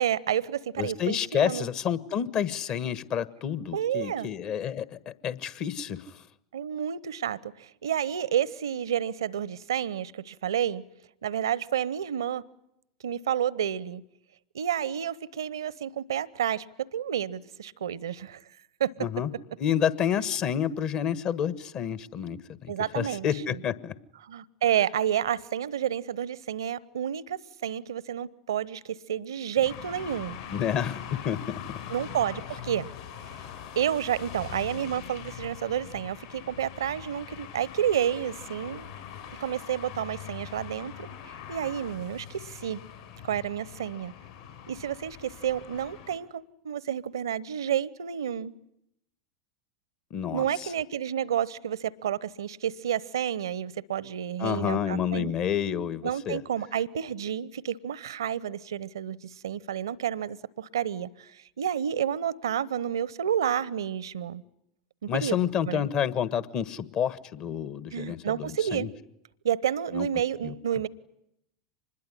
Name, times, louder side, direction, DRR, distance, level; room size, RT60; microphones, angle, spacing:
voice 1, 0.0-1.7 3.7-4.3 6.5-10.8 11.2-12.4 13.0-14.0 14.5-16.6 16.9-18.4 18.8-18.9 22.7-23.6 24.2-30.4 31.9-32.9 33.8-38.9 39.4-42.8 43.2-44.1 44.7-48.5 50.3-55.3 56.0-64.4 65.0-65.9 67.9-68.9 69.4-70.9, right 9 dB, 70° right, 22 dB, 0.9 m, -30 dB
voice 2, 0.8-6.2 19.0-19.3 19.6-23.9 30.5-31.8 50.1-50.7 54.4-56.4 65.1-68.9 69.9-70.1 70.4-70.5, left 9 dB, 40° left, 16 dB, 1.4 m, -29 dB
sound 1, 29.6-46.2, left 9 dB, 70° left, 6.2 m, -42 dB
25.5 x 21.0 x 9.9 m, 0.80 s
figure-of-eight pair, 85°, 2 cm